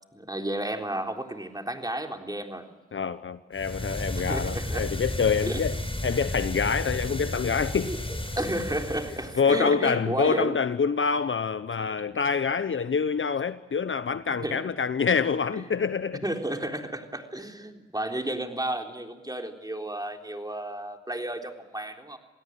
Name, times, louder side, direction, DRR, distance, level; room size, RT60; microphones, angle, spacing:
voice 1, 0.1-2.7 4.2-4.9 5.5-5.6 7.9-8.0 8.4-10.6 11.9-12.0 14.4-14.6 15.5-15.9 16.2-22.2, right 1 dB, 15° right, 3.8 m, -32 dB
voice 2, 2.9-5.8 6.0-7.9 9.4-16.2, left 5 dB, 45° left, 0.9 m, -26 dB
sound 1, 3.5-9.4, left 1 dB, 20° left, 4.4 m, -33 dB
28.0 x 17.5 x 7.6 m
supercardioid pair, 45°, 29 cm